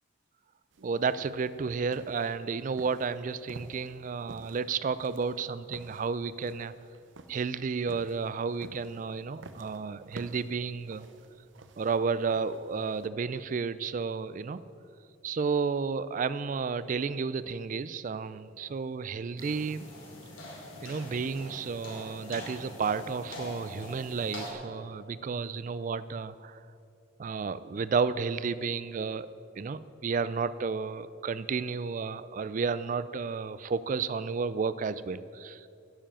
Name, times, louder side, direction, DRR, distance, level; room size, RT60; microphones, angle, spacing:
sound 1, 0.7-13.1, right 2 dB, 70° right, 0.7 m, -52 dB
voice 1, 0.8-6.7 7.3-11.1 11.8-14.6 15.2-19.8 20.8-26.6 27.2-29.3 29.6-35.7, right 5 dB, 40° right, 16 dB, 0.3 m, -32 dB
sound 2, 19.4-24.5, left 1 dB, 80° left, 2.7 m, -43 dB
10.0 x 7.3 x 8.9 m, 2.6 s
head